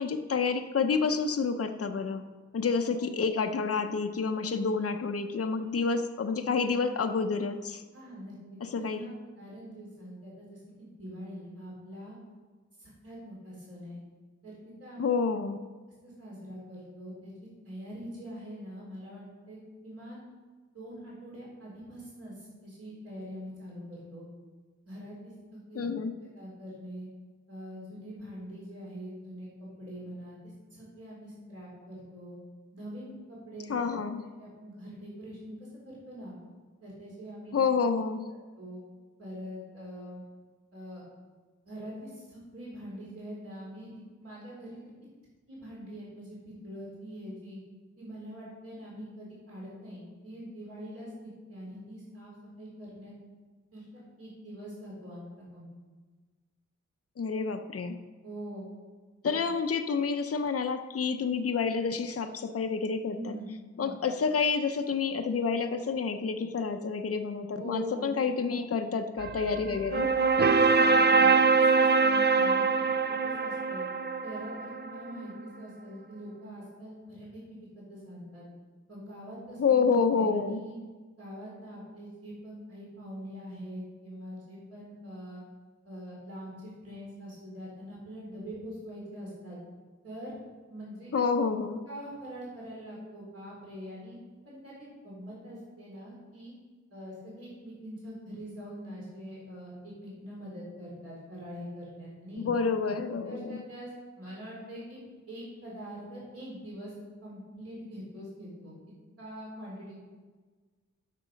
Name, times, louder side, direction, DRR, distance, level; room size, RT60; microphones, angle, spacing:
voice 1, 0.0-2.2 2.5-7.8 8.6-9.0 15.0-15.6 25.7-26.1 33.7-34.2 37.5-38.2 57.2-58.0 59.2-63.3 63.8-70.1 79.6-80.6 91.1-91.8 102.4-103.6, left 5 dB, 50° left, 7 dB, 0.7 m, -29 dB
voice 2, 7.9-9.1 9.4-12.2 12.8-14.0 14.4-15.1 15.9-19.6 19.8-20.2 20.7-24.2 24.9-25.8 26.4-27.1 27.5-32.4 32.7-33.7 34.4-35.6 35.8-36.4 36.8-37.5 38.6-38.8 39.2-40.2 40.7-41.0 41.7-44.8 45.5-47.6 48.0-53.1 53.7-53.8 54.2-55.3 55.5-55.7 58.2-58.7 63.1-63.5 63.7-64.0 67.6-68.1 69.6-69.8 70.4-73.9 74.2-78.4 78.9-80.8 81.2-85.4 85.8-89.6 90.0-90.3 90.7-91.1 91.9-94.2 94.5-96.5 96.9-102.4 102.8-102.9 103.2-105.0 105.3-106.9 107.2-108.7 109.2-110.0, equal, 55° right, -6 dB, 3.8 m, -43 dB
sound 1, 69.2-75.1, right 4 dB, 35° right, 0.6 m, -24 dB
12.0 x 6.7 x 5.1 m, 1.4 s
wide cardioid pair, 110°, 30 cm